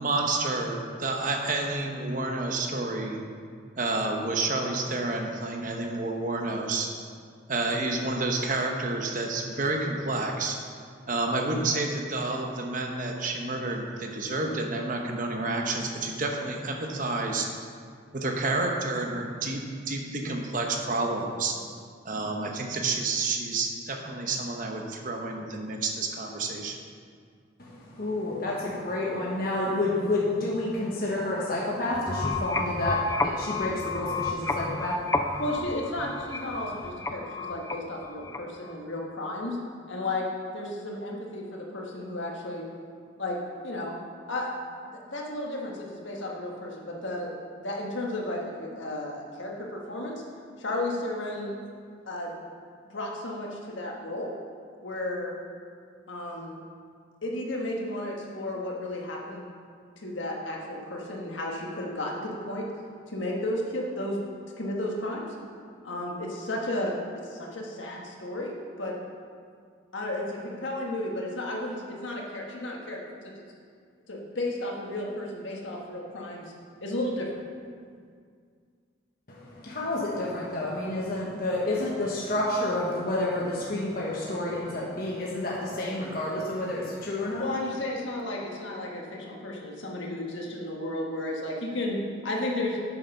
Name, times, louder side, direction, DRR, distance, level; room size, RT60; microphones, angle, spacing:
voice 1, 0.0-3.2 3.8-6.9 7.5-10.6 11.1-17.5 18.1-21.6 22.0-26.8, right 2 dB, 40° right, 2 dB, 0.9 m, -29 dB
voice 2, 27.6-35.4 79.3-87.5, left 1 dB, 45° left, -5 dB, 1.2 m, -29 dB
sound 1, 31.9-38.7, left 3 dB, 15° left, 0.3 m, -32 dB
voice 3, 35.4-39.6 39.9-40.2 40.5-42.6 43.2-43.4 43.6-43.9 44.3-44.5 44.8-47.3 47.6-50.2 50.6-51.7 52.1-52.3 52.9-54.3 54.8-55.3 56.1-56.6 57.2-59.5 60.0-62.7 63.1-64.2 64.6-65.3 65.8-68.9 69.9-73.0 74.1-76.5 76.8-77.4 87.4-92.0 92.2-92.8, left 1 dB, 75° left, -1 dB, 1.5 m, -33 dB
8.4 x 6.6 x 5.4 m, 2.1 s
head